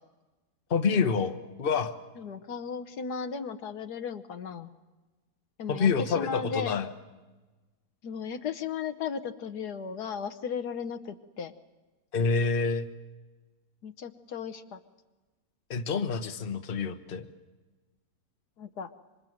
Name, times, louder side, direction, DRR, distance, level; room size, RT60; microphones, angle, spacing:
voice 1, 0.7-1.9 5.7-6.9 12.1-12.9 15.7-17.3, left 5 dB, 35° left, 7 dB, 1.2 m, -27 dB
voice 2, 2.2-4.7 5.6-6.8 8.0-11.5 13.8-14.8 18.6-18.9, left 6 dB, 75° left, 8 dB, 1.5 m, -36 dB
26.0 x 25.0 x 7.8 m, 1.2 s
omnidirectional pair, 1.8 m